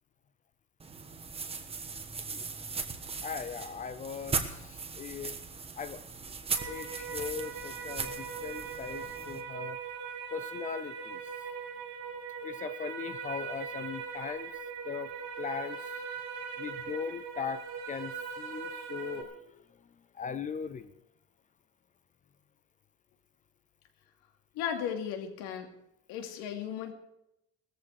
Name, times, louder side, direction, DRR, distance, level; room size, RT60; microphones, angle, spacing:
sound 1, 0.8-9.4, right 4 dB, 15° right, 1.3 m, -38 dB
voice 1, 3.2-5.4 5.8-6.0 6.7-9.8 10.3-11.2 12.4-14.5 14.8-15.1 15.4-15.8 16.6-19.6 20.1-20.9, left 7 dB, 20° left, 13 dB, 0.5 m, -39 dB
sound 2, 6.5-19.2, right 6 dB, 85° right, 5.0 m, -40 dB
voice 2, 24.5-25.7 26.1-26.9, left 8 dB, 75° left, 5 dB, 2.8 m, -35 dB
18.0 x 14.0 x 4.8 m, 0.85 s
cardioid pair, 175°, 38 cm